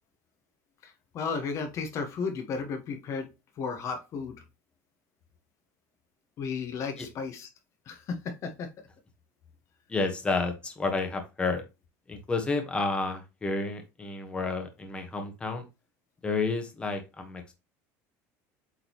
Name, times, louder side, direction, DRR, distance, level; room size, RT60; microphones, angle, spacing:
voice 1, 0.8-3.3 3.6-4.4 6.4-7.5 7.9-8.7, left 5 dB, 45° left, 5 dB, 1.2 m, -34 dB
voice 2, 9.9-11.6 12.1-15.6 16.2-17.5, left 3 dB, 15° left, 4 dB, 1.3 m, -30 dB
8.2 x 3.8 x 3.1 m, 0.26 s
cardioid pair, 140°, 7 cm